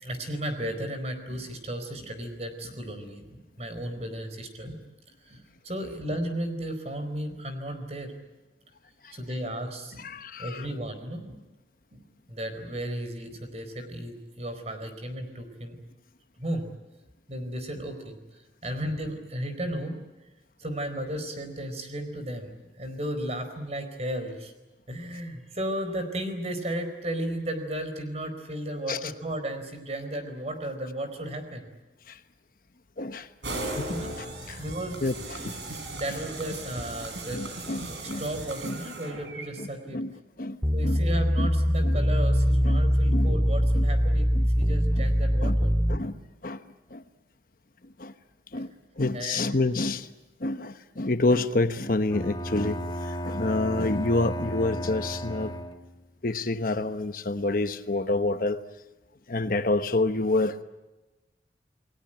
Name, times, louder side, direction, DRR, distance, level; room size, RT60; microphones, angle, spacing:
voice 1, 0.0-4.8 5.2-8.1 9.1-10.1 10.4-11.4 11.9-15.8 16.4-16.7 17.3-18.2 18.6-20.0 20.6-24.5 24.9-31.7 33.9-34.1 34.6-35.0 35.4-35.5 35.9-37.4 37.8-40.0 40.7-44.3 44.6-45.7 49.1-49.5, right 1 dB, 40° right, 4.5 m, -34 dB
voice 2, 10.0-10.7 28.9-29.1 32.1-32.2 33.0-33.3 33.8-34.6 35.0-35.6 37.3-38.2 38.6-38.8 39.6-39.7 39.9-40.1 40.4-40.6 40.8-41.0 41.4-41.5 41.8-42.0 42.6-43.3 43.8-43.9 44.3-44.5 45.0-45.1 45.4-45.6 45.9-46.6 46.9-47.0 48.0-48.1 48.5-50.1 50.4-55.5 56.2-58.6 59.3-60.6, left 2 dB, 50° left, 1.1 m, -28 dB
sound 1, 33.4-39.5, right 2 dB, 85° right, 5.6 m, -37 dB
sound 2, 40.6-46.0, equal, 10° right, 1.7 m, -23 dB
Bowed string instrument, 52.1-56.1, equal, 25° left, 1.7 m, -34 dB
29.5 x 20.0 x 9.0 m
head